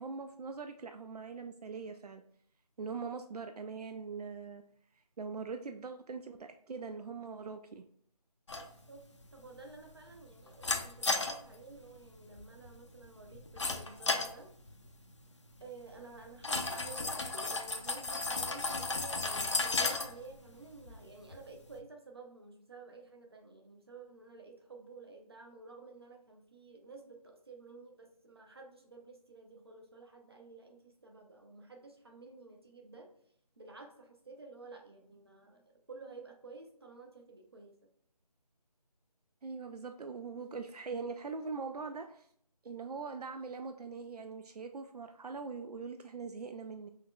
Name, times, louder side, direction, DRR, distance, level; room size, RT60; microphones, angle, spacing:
voice 1, 0.0-2.2 2.8-4.6 5.2-7.8 39.4-42.3 42.6-46.9, right 4 dB, 75° right, 7 dB, 0.4 m, -42 dB
sound 1, 8.5-21.8, left 3 dB, 50° left, 0.5 m, -37 dB
voice 2, 9.3-14.5 15.6-33.1 33.6-37.8, right 3 dB, 40° right, 2 dB, 0.8 m, -52 dB
5.5 x 3.1 x 2.3 m, 0.66 s
figure-of-eight pair, 175°, 20 cm